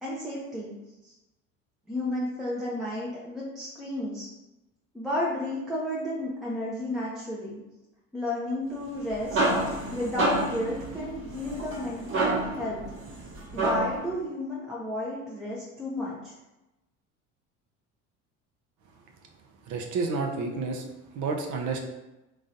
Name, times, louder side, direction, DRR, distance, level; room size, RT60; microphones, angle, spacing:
voice 1, 0.0-0.7 1.0-1.1 1.9-4.3 4.9-7.6 8.1-12.8 13.5-16.3, left 1 dB, ahead, -6 dB, 0.7 m, -32 dB
sound 1, 8.9-14.1, right 2 dB, 35° right, 0.9 m, -29 dB
voice 2, 19.7-20.8 21.1-21.8, right 4 dB, 50° right, 3 dB, 0.8 m, -30 dB
3.8 x 3.0 x 2.6 m, 1.0 s
hypercardioid pair, 75°, 38 cm